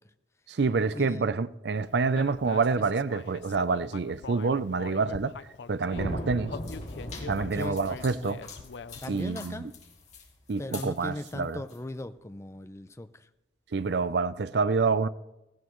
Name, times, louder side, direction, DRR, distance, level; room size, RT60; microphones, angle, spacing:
voice 1, 0.5-5.3 5.7-6.6 7.3-8.4 9.1-9.7 10.5-11.6 13.7-15.1, right 4 dB, 70° right, 0.5 m, -27 dB
Human voice, 2.2-6.0 6.5-9.2, left 5 dB, 85° left, 0.5 m, -43 dB
sound 1, 5.9-10.3, equal, 60° left, 2.4 m, -39 dB
sound 2, 6.5-11.8, left 6 dB, 40° left, 2.4 m, -48 dB
voice 2, 9.0-9.7 10.6-13.3, left 1 dB, 15° left, 0.5 m, -38 dB
17.0 x 16.5 x 3.1 m
head